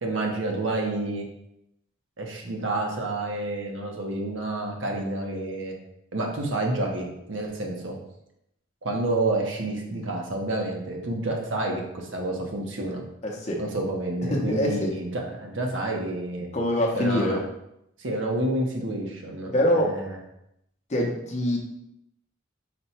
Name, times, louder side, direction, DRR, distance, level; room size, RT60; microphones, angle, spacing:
voice 1, 0.0-1.2 2.2-5.7 6.1-8.0 8.8-13.0 13.6-16.5 16.9-17.4 18.0-20.2, right 2 dB, 70° right, 1 dB, 0.8 m, -29 dB
voice 2, 13.2-13.6 14.3-14.9 16.5-17.4 19.5-20.0 20.9-21.6, left 1 dB, 35° left, -1 dB, 0.6 m, -24 dB
4.2 x 2.2 x 4.2 m, 0.81 s
head